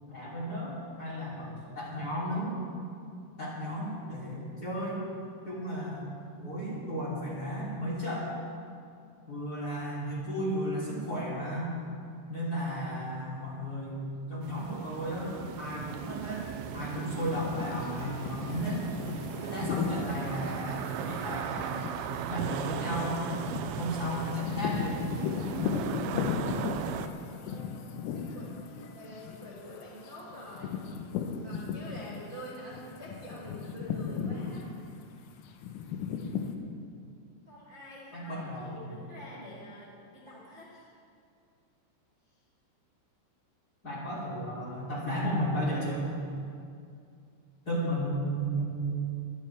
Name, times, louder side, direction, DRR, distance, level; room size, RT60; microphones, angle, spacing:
voice 1, 0.1-2.6 3.4-5.0 5.4-6.1 6.4-8.3 9.3-11.7 12.3-18.9 19.4-22.0 22.3-23.2 23.8-25.0 38.1-38.9 43.8-46.1 47.6-49.0, equal, 25° left, -7 dB, 2.9 m, -34 dB
sound 1, 14.4-27.1, right 9 dB, 85° right, 2.5 m, -37 dB
sound 2, 17.2-32.4 32.7-36.5, left 6 dB, 90° left, 3.6 m, -36 dB
voice 2, 27.2-27.7 28.1-28.5 28.9-30.8 31.4-34.7 37.4-40.9, equal, 20° right, -8 dB, 1.2 m, -46 dB
24.0 x 11.5 x 3.4 m, 2.4 s
omnidirectional pair, 5.9 m